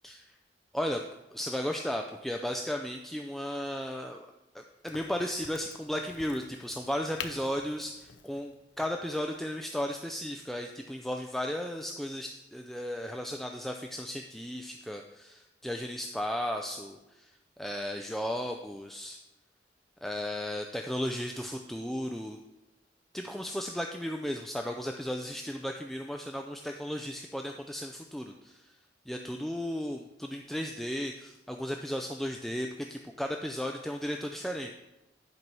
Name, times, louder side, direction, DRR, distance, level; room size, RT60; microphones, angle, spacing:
voice 1, 0.7-1.0 1.3-17.3 17.6-19.2 20.0-22.4 23.1-28.8 29.1-34.7, equal, ahead, 3 dB, 0.4 m, -35 dB
Crack, 4.9-10.3, left 6 dB, 80° left, 0.7 m, -47 dB
11.0 x 4.5 x 5.4 m, 1.0 s
head